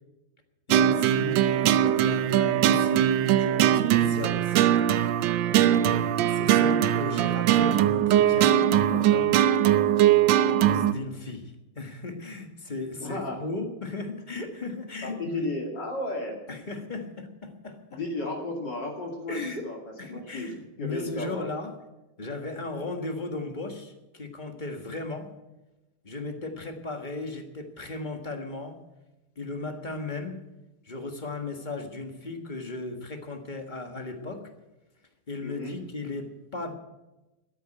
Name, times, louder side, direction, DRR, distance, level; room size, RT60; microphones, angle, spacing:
voice 1, 0.7-4.7 5.6-9.3 10.4-15.5 16.5-18.0 19.3-19.7 20.0-21.8 22.2-25.3 26.0-28.8 29.4-30.4 30.8-34.5 35.3-36.7, left 2 dB, 25° left, 5 dB, 1.4 m, -36 dB
sound 1, 0.7-10.9, right 11 dB, 70° right, 1.2 m, -21 dB
voice 2, 13.0-13.4 15.0-16.4 17.9-19.8 20.1-21.5 35.4-35.8, left 2 dB, 55° left, 0 dB, 3.0 m, -33 dB
13.5 x 9.3 x 9.0 m, 1.0 s
omnidirectional pair, 2.4 m